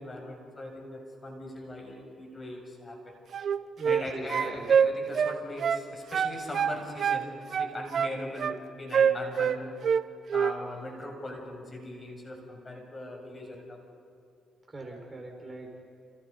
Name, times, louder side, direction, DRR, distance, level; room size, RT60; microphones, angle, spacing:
voice 1, 0.0-3.1 3.8-7.3 7.6-9.8 10.3-13.8, left 1 dB, 25° left, 2 dB, 7.0 m, -40 dB
sound 1, 3.3-4.0 4.3-5.8 6.1-7.2 7.5-8.6 8.9-10.0 10.3-10.6, right 7 dB, 55° right, 1.0 m, -25 dB
voice 2, 3.8-4.7 14.7-15.8, right 2 dB, 25° right, 1 dB, 5.2 m, -41 dB
30.0 x 29.5 x 5.5 m, 2.7 s
cardioid pair, 90°, 0 cm